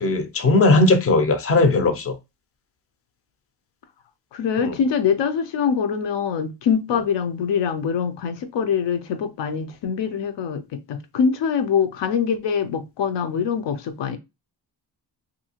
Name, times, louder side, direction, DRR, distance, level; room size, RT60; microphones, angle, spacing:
voice 1, 0.0-2.2 4.6-4.7, left 2 dB, 35° left, 0.5 m, -18 dB
voice 2, 4.3-14.2, left 7 dB, 75° left, 0.6 m, -24 dB
2.7 x 2.6 x 2.7 m
wide cardioid pair, 155°, 43 cm